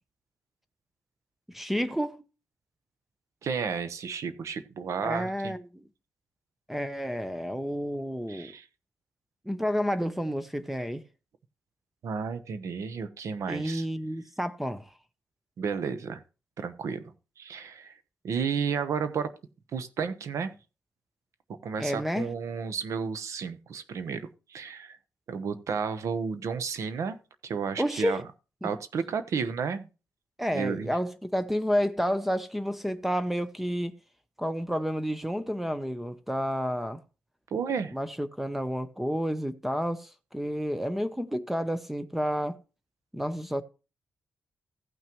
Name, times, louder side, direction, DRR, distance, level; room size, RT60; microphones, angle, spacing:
voice 1, 1.5-2.2 5.0-5.6 6.7-8.5 9.5-11.0 13.5-14.8 21.8-22.3 27.8-28.2 28.6-28.7 30.4-33.9 34.4-37.0 37.9-42.6 43.1-43.6, equal, 5° right, 0.6 m, -30 dB
voice 2, 3.4-5.5 8.3-8.7 12.0-13.8 15.6-16.2 16.6-17.0 17.4-17.9 18.2-19.3 19.7-20.5 21.6-24.2 24.5-25.0 25.3-27.2 27.4-28.2 28.6-29.9 30.5-30.9 37.5-37.9, right 6 dB, 70° right, 0.9 m, -32 dB
15.5 x 5.9 x 3.0 m
wide cardioid pair, 125°, 5 cm